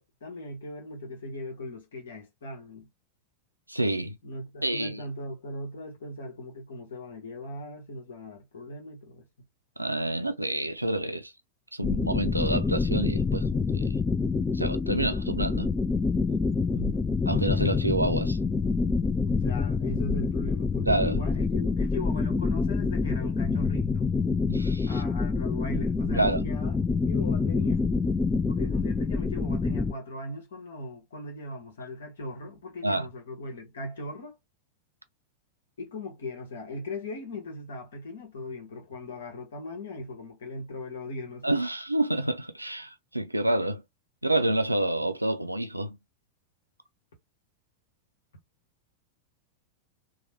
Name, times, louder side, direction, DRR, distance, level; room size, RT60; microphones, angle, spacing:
voice 1, 0.0-2.9 4.2-9.3 16.7-17.0 17.3-17.7 19.2-24.0 24.8-26.8 27.1-27.8 28.5-34.4 35.8-41.6, left 1 dB, 65° left, 1.2 m, -39 dB
voice 2, 3.7-4.2 4.6-5.0 9.8-11.3 11.7-14.0 14.5-15.7 17.3-18.4 20.9-21.2 24.5-25.0 26.2-26.4 32.8-33.1 41.4-43.8 44.2-46.0, right 1 dB, 85° right, 0.4 m, -28 dB
sound 1, 11.8-29.9, left 4 dB, 15° left, 0.3 m, -27 dB
3.1 x 2.1 x 2.8 m
figure-of-eight pair, 90°, 0 cm